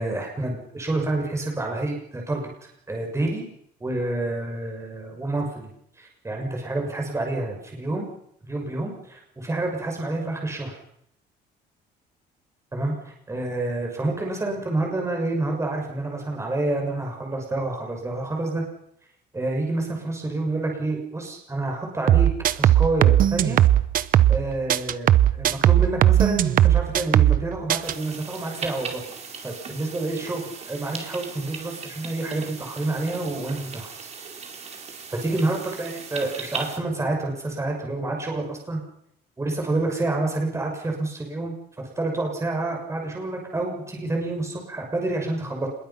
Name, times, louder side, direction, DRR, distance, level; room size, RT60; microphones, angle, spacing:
voice 1, 0.0-3.5 3.8-5.7 6.0-8.1 8.4-10.8 12.7-18.6 19.3-22.3 22.6-23.6 24.3-25.1 25.3-29.0 29.4-34.1 35.1-38.8 39.4-41.6 42.0-45.7, right 2 dB, 15° right, 1 dB, 6.5 m, -28 dB
sound 1, 22.1-24.4 24.7-27.4 27.7-27.9, right 12 dB, 55° right, 1.1 m, -17 dB
sound 2, 27.8-36.8, right 5 dB, 40° right, 4.7 m, -38 dB
26.5 x 22.0 x 6.0 m, 0.74 s
cardioid pair, 110°, 17 cm